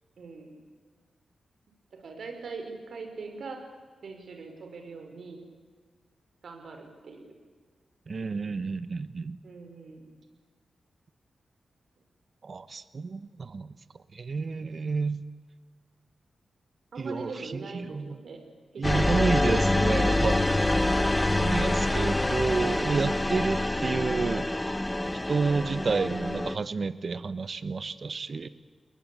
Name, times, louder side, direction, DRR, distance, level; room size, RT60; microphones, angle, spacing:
voice 1, 0.2-0.5 2.0-3.6 4.0-5.4 6.4-7.3 9.4-10.1 16.9-18.4, right 4 dB, 70° right, 4 dB, 5.8 m, -42 dB
voice 2, 8.1-9.4 12.4-13.7 14.1-15.2 17.0-18.2 18.8-20.5 21.4-24.5 25.3-28.5, right 4 dB, 45° right, 14 dB, 1.0 m, -30 dB
sound 1, 18.8-26.6, left 1 dB, 10° left, 0.8 m, -26 dB
29.5 x 21.5 x 8.8 m, 1.5 s
wide cardioid pair, 115°, 0 cm